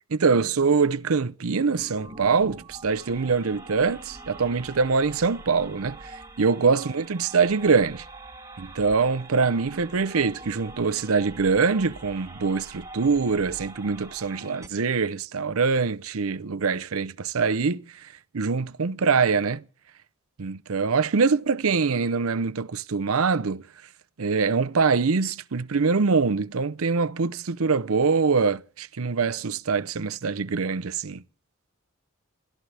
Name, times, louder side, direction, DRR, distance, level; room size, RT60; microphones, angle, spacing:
voice 1, 0.1-8.0 8.6-17.8 18.3-19.6 20.4-23.6 24.2-31.2, right 4 dB, 80° right, 0.7 m, -24 dB
sound 1, 1.8-14.7, right 2 dB, 15° right, 1.7 m, -44 dB
28.5 x 14.0 x 3.4 m
head